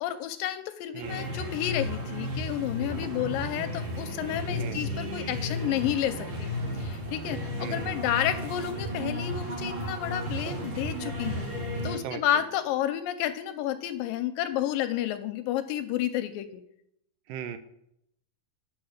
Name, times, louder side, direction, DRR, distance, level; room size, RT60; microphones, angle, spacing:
voice 1, 0.0-6.5 6.8-11.5 11.8-16.6, left 11 dB, 80° left, 10 dB, 2.1 m, -31 dB
voice 2, 0.9-1.3 4.5-4.9 7.6-8.2 12.0-12.2 17.3-17.6, right 8 dB, 80° right, 10 dB, 2.2 m, -38 dB
sound 1, 1.0-12.0, equal, 45° right, 1.7 m, -33 dB
9.5 x 6.1 x 6.4 m, 0.78 s
omnidirectional pair, 4.2 m